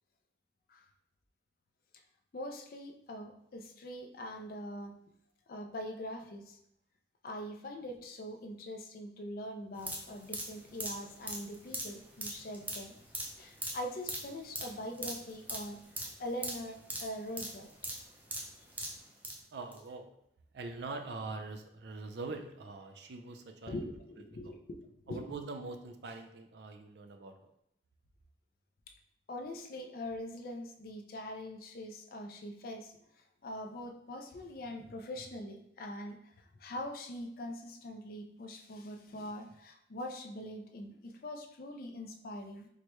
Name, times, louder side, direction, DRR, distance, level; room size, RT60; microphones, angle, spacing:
voice 1, 2.3-4.9 5.5-6.6 7.2-12.9 13.4-15.8 16.2-17.7 23.7-25.2 29.3-32.9 33.4-42.7, left 1 dB, 55° left, 4 dB, 0.4 m, -43 dB
sound 1, 9.8-19.4 19.7-19.8, right 1 dB, 10° right, 0.4 m, -41 dB
voice 2, 19.5-20.1 20.5-23.8 24.4-24.5 25.1-27.5, right 3 dB, 65° right, 6 dB, 0.4 m, -43 dB
4.5 x 2.1 x 3.0 m, 0.75 s
head